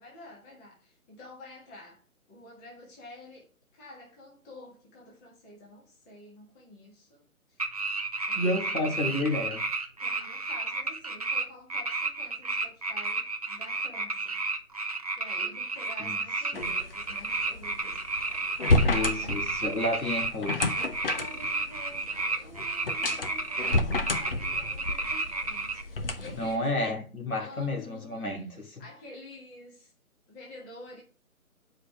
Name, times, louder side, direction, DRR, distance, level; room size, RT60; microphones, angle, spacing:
voice 1, 0.0-2.0 2.3-7.7 8.3-8.9 10.0-14.4 15.2-18.0 18.3-19.4 21.1-26.7 27.4-28.4 28.8-29.9 30.3-31.0, left 1 dB, 10° left, 1.5 m, -49 dB
sound 1, 7.6-11.4 11.7-25.8, right 3 dB, 25° right, 0.6 m, -32 dB
voice 2, 8.3-9.6 16.0-16.2 16.5-16.7 18.8-20.8 26.2-28.5, left 1 dB, 75° left, 2.9 m, -31 dB
sound 2, 16.6-26.6, left 2 dB, 40° left, 1.0 m, -30 dB
8.9 x 4.9 x 4.5 m
figure-of-eight pair, 145°, 43 cm